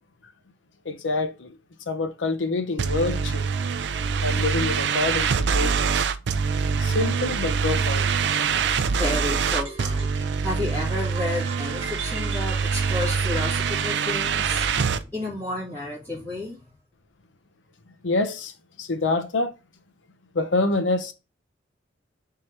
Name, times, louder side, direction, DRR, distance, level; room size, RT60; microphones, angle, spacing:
voice 1, 0.8-1.5 1.9-3.5 4.2-5.9 6.8-8.1 18.0-18.5 18.8-19.6 20.3-21.1, left 3 dB, 85° left, 0.7 m, -26 dB
sound 1, 2.8-15.0, right 5 dB, 65° right, 0.4 m, -24 dB
voice 2, 4.3-4.7 8.8-10.1 10.4-16.6, left 2 dB, 15° left, 2.3 m, -32 dB
sound 2, 9.1-13.9, right 5 dB, 35° right, 1.3 m, -41 dB
4.3 x 3.7 x 3.1 m
head